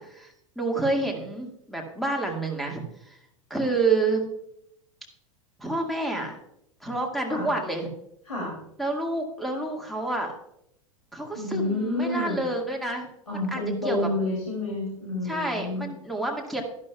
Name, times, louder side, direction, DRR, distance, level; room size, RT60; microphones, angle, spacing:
voice 1, 0.0-3.2 3.5-4.2 5.6-6.4 6.8-7.9 8.8-10.3 11.1-13.1 13.5-14.0 15.2-16.6, right 2 dB, ahead, 1 dB, 1.9 m, -28 dB
voice 2, 11.3-12.4 13.3-15.9, left 1 dB, 85° left, -4 dB, 2.8 m, -29 dB
12.0 x 11.5 x 2.3 m, 0.76 s
figure-of-eight pair, 90°, 18 cm